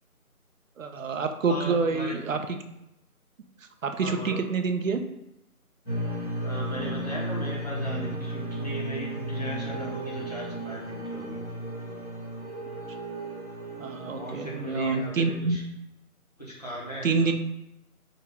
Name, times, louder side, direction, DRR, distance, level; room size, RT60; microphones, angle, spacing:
voice 1, 0.8-2.6 3.8-5.0 13.8-15.6 17.0-17.3, right 4 dB, 60° right, 6 dB, 0.5 m, -27 dB
voice 2, 1.5-2.2 4.0-4.4 6.4-11.4 14.2-15.7 16.4-17.3, right 1 dB, 30° left, -7 dB, 0.7 m, -37 dB
sound 1, 5.9-15.3, right 1 dB, ahead, 1.2 m, -34 dB
3.5 x 2.3 x 3.4 m, 0.86 s
figure-of-eight pair, 165°, 44 cm